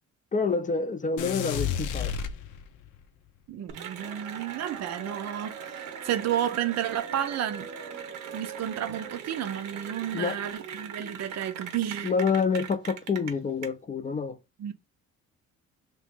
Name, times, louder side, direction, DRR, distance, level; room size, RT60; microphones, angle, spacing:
voice 1, 0.3-2.1 10.1-10.4 12.0-14.4, left 5 dB, 25° left, 0.5 m, -27 dB
sound 1, 1.2-3.0, left 8 dB, 80° left, 0.6 m, -31 dB
voice 2, 3.5-7.7 8.3-12.1 14.6-14.7, right 10 dB, 60° right, 0.5 m, -31 dB
Cheering / Applause, 3.7-13.7, right 7 dB, 85° right, 0.8 m, -39 dB
3.0 x 2.8 x 3.5 m
cardioid pair, 90°, 30 cm